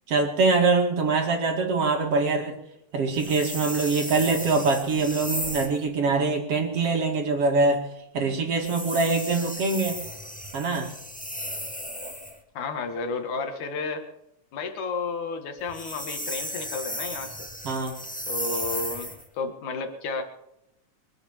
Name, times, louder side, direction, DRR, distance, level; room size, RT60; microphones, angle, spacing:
voice 1, 0.1-2.6 2.9-7.8 8.1-10.0 10.5-10.9 17.6-18.0, right 3 dB, 50° right, 3 dB, 3.1 m, -24 dB
sound 1, 3.1-5.8 8.5-12.4 15.6-19.3, equal, 5° left, 0.6 m, -35 dB
voice 2, 12.5-14.0 14.5-17.5 18.3-20.2, left 4 dB, 70° left, 6 dB, 3.2 m, -32 dB
23.5 x 8.0 x 7.3 m, 0.82 s
omnidirectional pair, 3.6 m